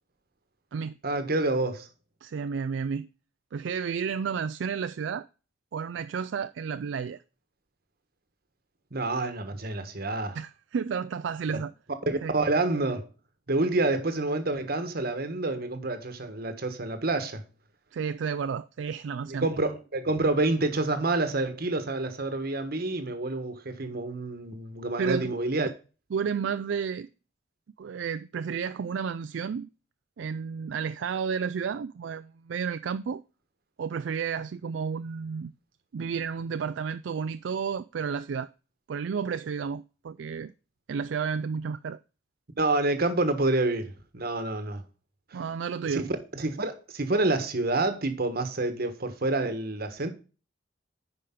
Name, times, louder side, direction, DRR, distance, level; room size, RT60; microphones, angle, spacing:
voice 1, 1.0-1.9 8.9-10.4 12.1-13.1 13.5-17.4 19.3-25.7 42.6-44.8 45.8-46.1 46.3-50.1, right 2 dB, 55° right, 1.3 m, -28 dB
voice 2, 2.2-3.1 3.5-5.3 5.7-7.2 10.3-11.7 12.2-12.3 17.9-19.5 25.0-25.3 26.1-27.1 27.8-29.7 30.2-33.2 33.8-35.5 35.9-38.5 38.9-40.5 40.9-42.0 45.3-46.1, right 6 dB, 70° right, 0.4 m, -31 dB
10.0 x 5.1 x 3.7 m
head